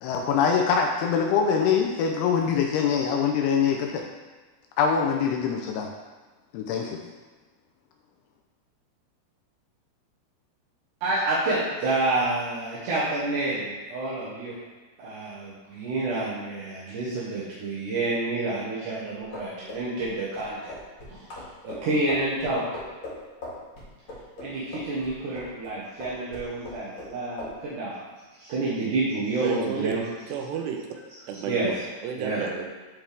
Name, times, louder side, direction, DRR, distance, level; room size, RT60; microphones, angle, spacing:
voice 1, 0.0-4.0 4.8-5.9 6.5-7.0, left 6 dB, 80° left, 2 dB, 2.5 m, -24 dB
voice 2, 11.0-14.6 15.0-20.7 21.1-21.3 21.6-22.7 24.4-27.9 28.4-30.0 31.5-31.7 32.2-32.5, right 2 dB, 65° right, -9 dB, 2.2 m, -28 dB
sound 1, 19.3-25.7 26.0-27.1 27.4-27.6, left 2 dB, 45° left, 1.9 m, -39 dB
voice 3, 29.4-30.0 30.3-30.9 31.3-31.6 32.0-32.7, right 7 dB, 85° right, 2 dB, 2.9 m, -31 dB
9.5 x 4.3 x 3.4 m, 1.3 s
omnidirectional pair, 4.9 m